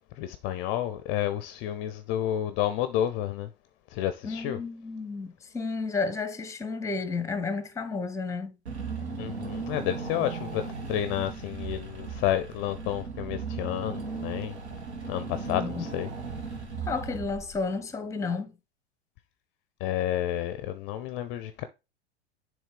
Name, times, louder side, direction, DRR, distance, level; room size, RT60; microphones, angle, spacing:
voice 1, 0.2-3.5 3.9-4.6 9.2-14.6 15.1-16.1 19.8-21.6, left 12 dB, 35° left, 0.5 m, -30 dB
voice 2, 4.2-8.6 15.6-15.8 16.9-18.5, left 4 dB, 10° left, 0.9 m, -32 dB
Car / Engine, 8.7-17.8, right 4 dB, 75° right, 1.8 m, -37 dB
7.2 x 3.2 x 4.9 m
figure-of-eight pair, 90°, 33 cm